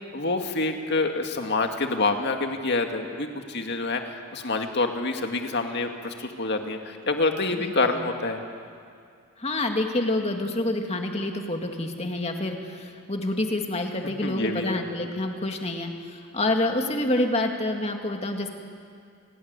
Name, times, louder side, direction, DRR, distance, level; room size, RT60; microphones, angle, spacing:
voice 1, 0.1-8.4 14.2-14.9, left 3 dB, 50° left, 4 dB, 2.2 m, -27 dB
voice 2, 7.5-8.0 9.4-15.9 16.3-18.5, left 1 dB, 30° left, 3 dB, 2.2 m, -27 dB
29.5 x 19.0 x 9.7 m, 2.3 s
head